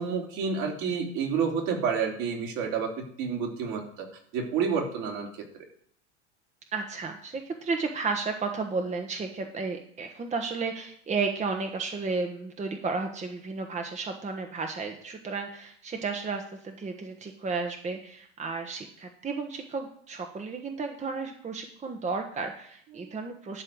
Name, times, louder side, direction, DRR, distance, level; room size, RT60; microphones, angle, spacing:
voice 1, 0.0-2.9 3.2-4.1 4.3-5.3 5.5-5.6 23.0-23.1, right 6 dB, 55° right, 1 dB, 3.1 m, -29 dB
voice 2, 6.7-23.6, right 4 dB, 20° right, 5 dB, 1.2 m, -33 dB
12.0 x 4.4 x 7.9 m, 0.64 s
hypercardioid pair, 95°, 35 cm